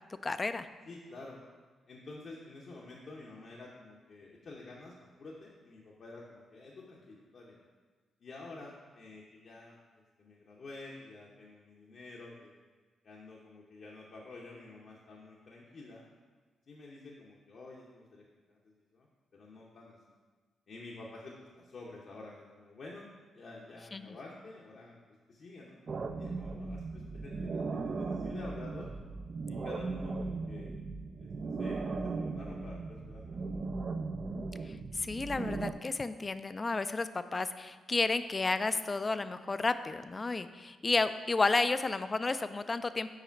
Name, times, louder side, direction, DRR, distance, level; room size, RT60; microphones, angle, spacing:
voice 1, 0.2-0.7 23.9-24.2 34.6-43.1, left 3 dB, 35° left, 12 dB, 0.3 m, -32 dB
voice 2, 0.9-1.4 1.9-7.6 8.2-12.5 13.0-16.1 16.7-18.2 18.5-19.1 19.3-20.0 20.7-23.1 23.3-25.0 25.3-25.8 26.2-28.9 29.5-30.8 31.2-31.3 31.6-33.7, left 2 dB, 60° left, -4 dB, 0.7 m, -49 dB
sound 1, 25.9-35.7, right 3 dB, 50° right, 0.4 m, -37 dB
4.9 x 4.8 x 4.5 m, 1.4 s
hypercardioid pair, 50°, 0 cm